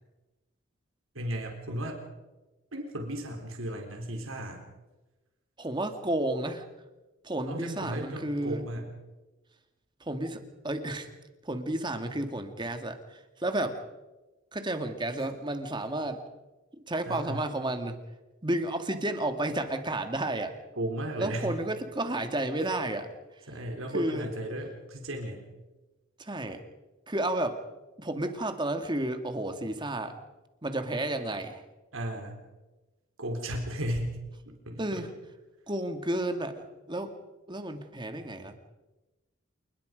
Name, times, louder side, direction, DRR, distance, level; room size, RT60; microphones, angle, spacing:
voice 1, 1.1-2.0 2.7-4.6 7.5-8.9 17.1-17.4 20.7-21.6 23.5-25.4 31.9-32.4 33.2-34.2 34.5-35.0, right 1 dB, 85° right, 2 dB, 4.1 m, -35 dB
voice 2, 5.6-6.6 7.2-8.7 10.0-11.1 11.4-13.8 14.5-16.2 16.9-18.0 18.4-20.6 21.2-23.4 23.9-24.3 26.2-26.6 27.1-27.6 28.0-30.2 30.6-31.6 34.8-35.1 35.7-37.1 37.5-38.6, right 1 dB, 20° right, 7 dB, 2.1 m, -32 dB
28.5 x 20.5 x 5.3 m, 1.1 s
head